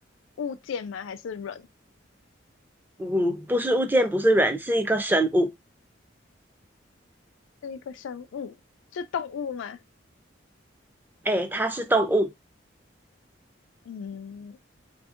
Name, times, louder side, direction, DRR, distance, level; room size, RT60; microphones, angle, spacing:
voice 1, 0.4-1.7 7.6-8.6 8.9-9.8 13.9-14.6, left 6 dB, 85° left, 0.3 m, -35 dB
voice 2, 3.0-5.5 11.2-12.3, right 1 dB, 10° right, 0.4 m, -23 dB
3.4 x 2.6 x 2.4 m
head